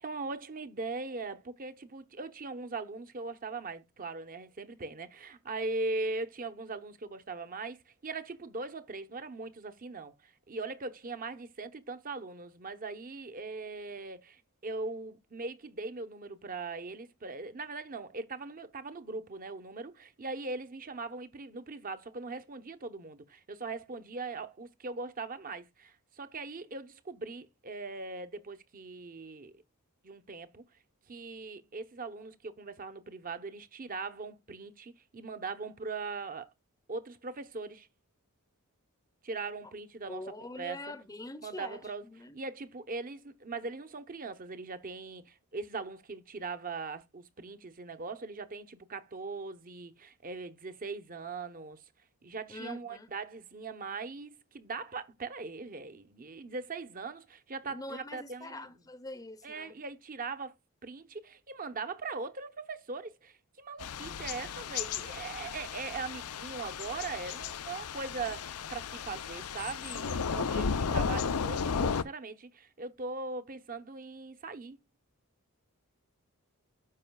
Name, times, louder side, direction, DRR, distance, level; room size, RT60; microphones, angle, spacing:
voice 1, 0.0-29.6 30.0-30.6 31.1-36.5 36.9-37.9 39.2-40.2 40.6-40.9 41.4-42.1 42.3-51.8 52.2-58.7 59.4-60.5 60.8-74.8, right 3 dB, 40° right, 0.9 m, -40 dB
voice 2, 40.1-42.4 52.5-53.1 57.6-59.8, left 2 dB, 15° left, 0.7 m, -44 dB
Thunder / Rain, 63.8-72.0, left 6 dB, 80° left, 0.6 m, -34 dB
13.5 x 5.5 x 2.3 m
head